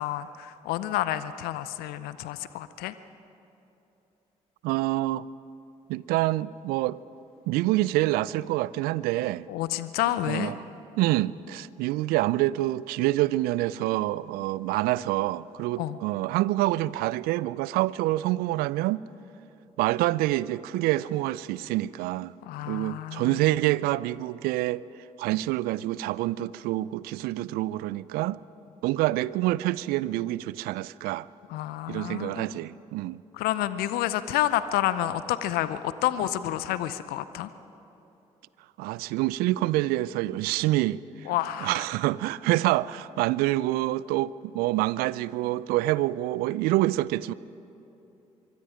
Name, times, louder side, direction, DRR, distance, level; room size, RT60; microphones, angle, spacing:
voice 1, 0.0-2.9 9.5-10.5 15.8-16.0 22.4-23.4 31.5-32.5 33.3-37.5 41.3-41.8, left 13 dB, 70° left, 0.7 m, -29 dB
voice 2, 4.6-5.3 5.9-7.0 7.5-9.5 10.3-10.6 11.0-19.0 19.8-22.3 22.7-24.8 25.2-28.4 28.8-31.3 31.9-33.2 38.8-41.0 41.6-47.3, right 17 dB, 70° right, 0.5 m, -26 dB
25.0 x 23.0 x 5.1 m
hypercardioid pair, 45°, 16 cm